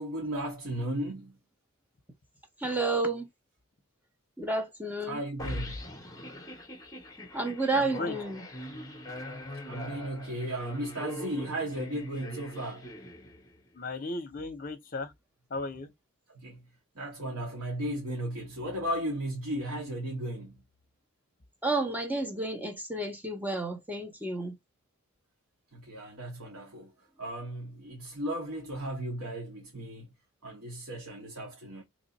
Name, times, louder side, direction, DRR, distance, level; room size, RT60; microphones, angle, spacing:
voice 1, 0.0-1.4 5.1-5.8 9.7-12.9 16.3-16.6 16.9-20.6 25.7-26.9 27.2-30.1 30.4-31.8, right 1 dB, 90° right, 1.2 m, -35 dB
voice 2, 2.6-3.3 4.4-5.2 7.3-8.4 21.6-24.6, right 2 dB, 10° right, 0.8 m, -31 dB
sound 1, 5.4-13.7, left 1 dB, 15° left, 0.9 m, -42 dB
voice 3, 7.7-8.2 13.7-15.1 15.5-15.9, left 3 dB, 40° left, 0.9 m, -35 dB
3.2 x 2.5 x 4.0 m
head